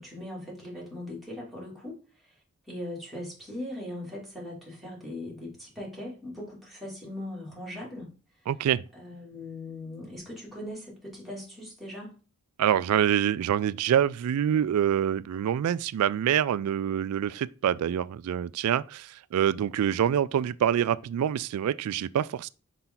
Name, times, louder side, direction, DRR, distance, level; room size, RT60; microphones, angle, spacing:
voice 1, 0.0-2.3 2.7-8.1 8.9-12.1, left 1 dB, ahead, 3.0 m, -40 dB
voice 2, 8.5-8.8 12.6-22.5, right 9 dB, 85° right, 0.3 m, -26 dB
5.8 x 5.5 x 3.9 m
head